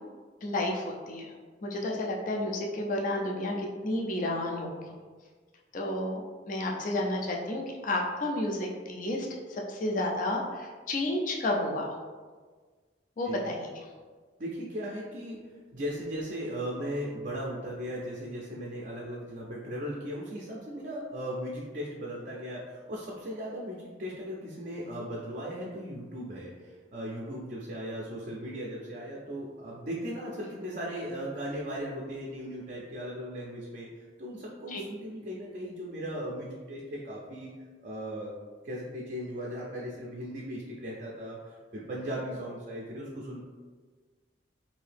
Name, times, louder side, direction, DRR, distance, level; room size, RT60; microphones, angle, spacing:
voice 1, 0.4-1.3 1.6-4.8 5.7-6.2 6.5-11.9 13.2-13.7 34.7-34.8, left 1 dB, 45° left, 0 dB, 0.4 m, -31 dB
voice 2, 14.4-15.4 15.7-33.9 34.2-37.5 37.8-38.3 38.6-43.4, equal, 45° right, -3 dB, 0.4 m, -37 dB
2.7 x 2.7 x 3.3 m, 1.5 s
head